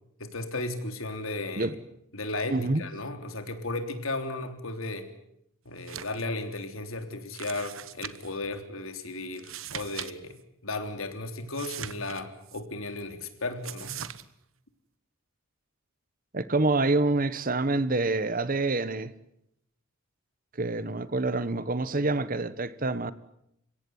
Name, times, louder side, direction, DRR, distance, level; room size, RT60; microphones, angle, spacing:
voice 1, 0.2-1.8 2.1-5.1 5.6-10.3 10.6-14.0, left 2 dB, 80° left, 7 dB, 3.5 m, -35 dB
voice 2, 2.5-2.8 16.3-19.1 20.6-23.1, right 2 dB, 40° right, 15 dB, 1.2 m, -27 dB
sound 1, 5.8-6.2 6.6-6.7 7.3-8.4 9.3-10.1 10.4-10.5 11.5-12.6 13.6-14.2, right 10 dB, 75° right, 1.2 m, -40 dB
30.0 x 17.0 x 9.5 m, 0.79 s
head